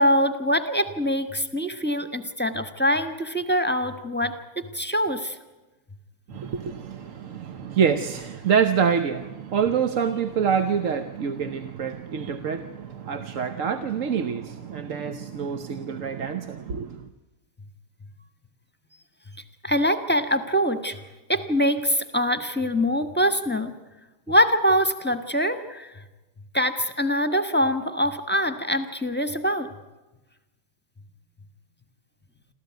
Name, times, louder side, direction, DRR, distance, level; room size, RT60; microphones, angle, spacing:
voice 1, 0.0-5.4 19.6-21.0 21.3-23.7 24.3-25.9 26.5-29.7, equal, 10° left, 1.2 m, -24 dB
voice 2, 6.3-17.1, right 7 dB, 65° right, 1.3 m, -26 dB
27.5 x 14.0 x 9.3 m
omnidirectional pair, 1.6 m